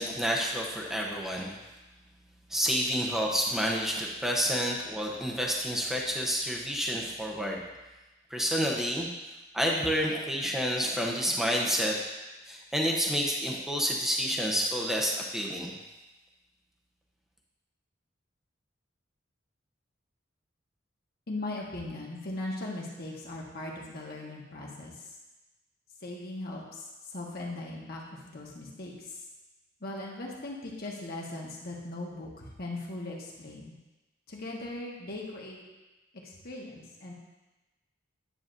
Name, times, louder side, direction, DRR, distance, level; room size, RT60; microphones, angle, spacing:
voice 1, 0.0-1.5 2.5-7.6 8.3-9.1 9.5-12.0 12.5-15.7, equal, ahead, -2 dB, 0.8 m, -29 dB
voice 2, 21.3-25.0 26.0-26.6 27.1-29.2 29.8-33.7 34.3-35.6 36.2-37.1, left 2 dB, 55° left, -2 dB, 1.3 m, -39 dB
9.8 x 5.9 x 2.6 m, 1.1 s
head